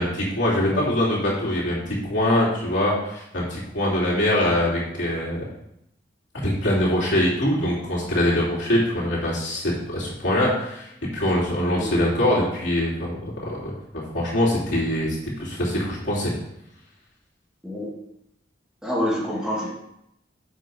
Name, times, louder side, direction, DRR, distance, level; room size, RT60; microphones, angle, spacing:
voice 1, 0.0-5.4 6.4-13.7 14.1-16.3, left 1 dB, 90° left, -6 dB, 3.1 m, -23 dB
voice 2, 11.8-12.1 17.6-17.9 18.8-19.7, equal, 5° right, -5 dB, 1.9 m, -27 dB
7.8 x 5.6 x 4.7 m, 0.80 s
head